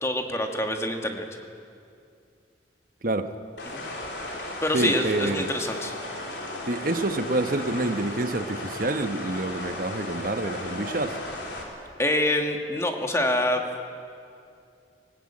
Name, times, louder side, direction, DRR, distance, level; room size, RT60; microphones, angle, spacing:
voice 1, 0.0-1.3 3.6-3.8 4.6-5.9 12.0-13.6, left 1 dB, 15° left, 4 dB, 1.7 m, -26 dB
sound 1, 3.6-11.6, left 1 dB, 80° left, 3.6 m, -35 dB
voice 2, 4.7-5.5 6.7-11.2, right 2 dB, 50° right, 8 dB, 1.1 m, -27 dB
20.0 x 18.0 x 8.7 m, 2.4 s
head